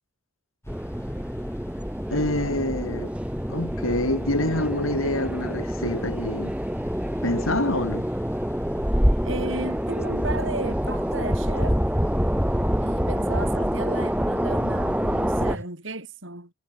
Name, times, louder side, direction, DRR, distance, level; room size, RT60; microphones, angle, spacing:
sound 1, 0.6-15.6, equal, 10° left, 3.0 m, -39 dB
sound 2, 0.7-15.6, equal, 5° right, 3.0 m, -26 dB
voice 1, 2.1-3.1 3.5-6.6 7.2-8.0, left 1 dB, 80° left, 6.3 m, -26 dB
voice 2, 9.2-11.8 12.8-16.5, right 2 dB, 60° right, 7.6 m, -34 dB
head